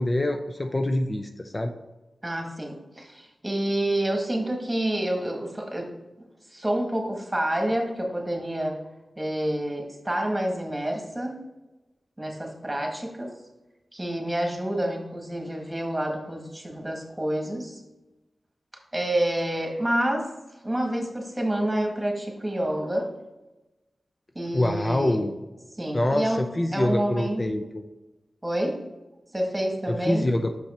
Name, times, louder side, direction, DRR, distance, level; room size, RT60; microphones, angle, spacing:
voice 1, 0.0-1.7 24.5-25.3 25.9-27.8 29.9-30.5, left 1 dB, 35° left, 5 dB, 0.5 m, -25 dB
voice 2, 2.2-5.9 6.5-8.8 9.2-11.4 12.2-13.3 13.9-17.8 18.9-20.3 20.6-23.1 24.3-25.2 25.8-26.4 26.7-27.5 28.4-28.8 29.3-30.3, right 1 dB, 15° right, 2 dB, 1.7 m, -28 dB
6.0 x 5.6 x 4.3 m, 1.1 s
cardioid pair, 55°, 0 cm